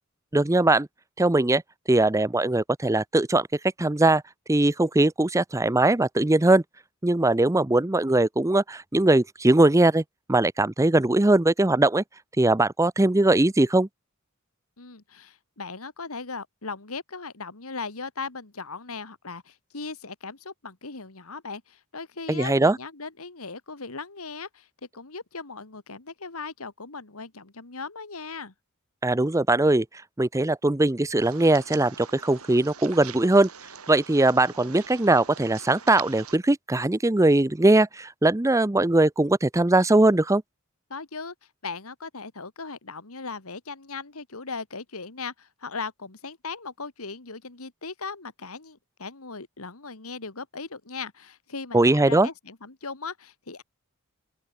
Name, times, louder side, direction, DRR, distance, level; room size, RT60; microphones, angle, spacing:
voice 1, 0.3-0.9 1.2-1.6 1.9-3.5 3.8-4.2 4.5-6.6 7.0-10.0 10.3-12.0 12.4-13.9 22.3-22.8 29.0-29.9 30.2-33.5 33.9-40.4 51.7-52.3, right 2 dB, 15° right, 0.6 m, -20 dB
voice 2, 14.8-24.7 24.9-28.5 40.9-41.3 41.6-53.6, left 4 dB, 80° left, 2.1 m, -38 dB
sound 1, 31.2-36.4, right 7 dB, 85° right, 6.1 m, -43 dB
open air
head